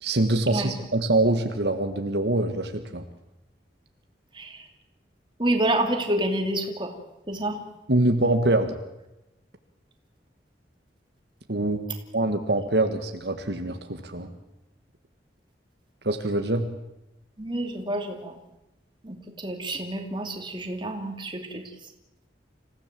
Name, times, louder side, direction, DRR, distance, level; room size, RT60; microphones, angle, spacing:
voice 1, 0.0-3.0 7.9-8.8 11.5-11.8 12.1-14.3 16.0-16.7, right 2 dB, 65° right, 6 dB, 1.6 m, -24 dB
voice 2, 4.3-4.7 5.4-6.9 7.3-7.6 17.4-18.4 19.0-21.6, right 1 dB, 25° right, 4 dB, 2.8 m, -28 dB
26.5 x 16.0 x 7.6 m, 0.92 s
head